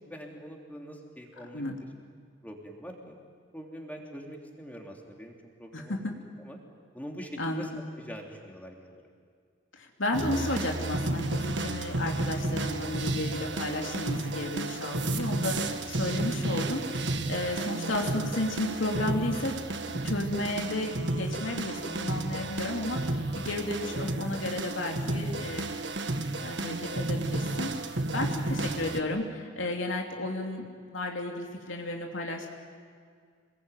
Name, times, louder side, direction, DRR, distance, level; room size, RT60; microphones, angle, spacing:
voice 1, 0.0-1.6 2.4-3.2 3.5-5.3 5.6-6.1 6.4-6.6 6.9-7.7 8.0-9.0 17.5-17.7 28.7-28.9, equal, 10° left, 0 dB, 3.3 m, -44 dB
voice 2, 5.7-6.1 7.4-7.8 9.7-19.5 19.8-25.7 26.4-30.7 30.9-32.5, left 1 dB, 80° left, 1 dB, 3.0 m, -33 dB
sound 1, 10.1-29.0, right 2 dB, 60° right, 1.6 m, -32 dB
27.0 x 21.5 x 9.3 m, 2.1 s
head